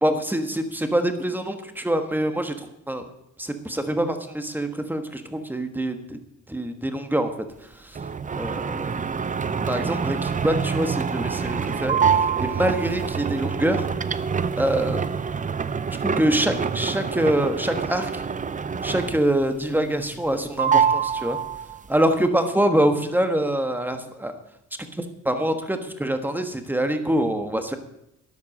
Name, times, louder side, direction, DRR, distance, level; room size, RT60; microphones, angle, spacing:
voice 1, 0.0-3.0 3.4-6.2 6.5-7.3 7.6-8.0 8.3-9.0 9.7-13.9 14.5-15.2 16.0-18.2 18.8-21.4 21.9-24.3 24.8-27.8, right 1 dB, 5° right, 7 dB, 1.3 m, -25 dB
sound 1, 7.9-19.4 19.8-20.3 20.6-21.9, right 6 dB, 25° right, 0.5 m, -26 dB
12.5 x 10.5 x 6.5 m, 0.82 s
wide cardioid pair, 135°, 30 cm